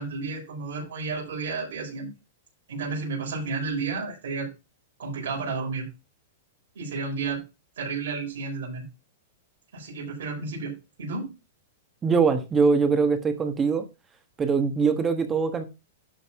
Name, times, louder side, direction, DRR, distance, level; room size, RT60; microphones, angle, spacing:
voice 1, 0.0-2.1 2.7-4.5 5.0-5.9 6.7-7.4 7.8-8.9 9.7-11.3, right 4 dB, 75° right, 4.8 m, -32 dB
voice 2, 12.0-13.8 14.4-15.6, right 5 dB, 20° right, 1.3 m, -22 dB
11.5 x 4.0 x 4.8 m
hypercardioid pair, 135°, 0 cm